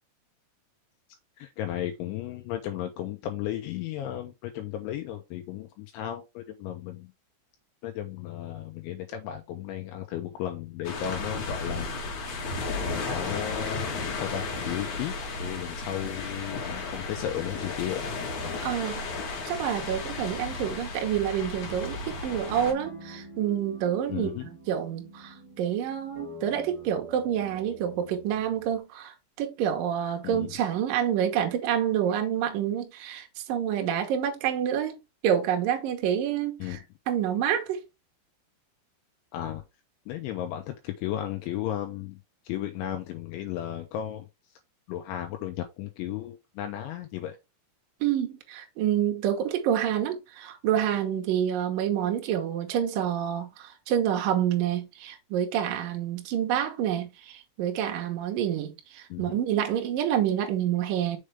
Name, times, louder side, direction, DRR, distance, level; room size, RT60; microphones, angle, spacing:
voice 1, 1.4-7.1 7.8-11.9 12.7-15.1 15.4-18.0 24.1-24.5 30.2-30.6 36.6-36.8 39.3-39.6 40.1-42.2 42.5-44.3 44.9-47.4 59.1-59.4, left 12 dB, 80° left, 3.0 m, -34 dB
sound 1, 10.8-22.7, left 3 dB, 55° left, 2.4 m, -34 dB
voice 2, 18.6-35.0 35.2-36.8 37.1-37.8 48.0-61.2, right 10 dB, 85° right, 1.9 m, -28 dB
sound 2, 22.3-28.8, right 1 dB, 55° right, 1.5 m, -46 dB
6.6 x 5.0 x 3.3 m
omnidirectional pair, 5.7 m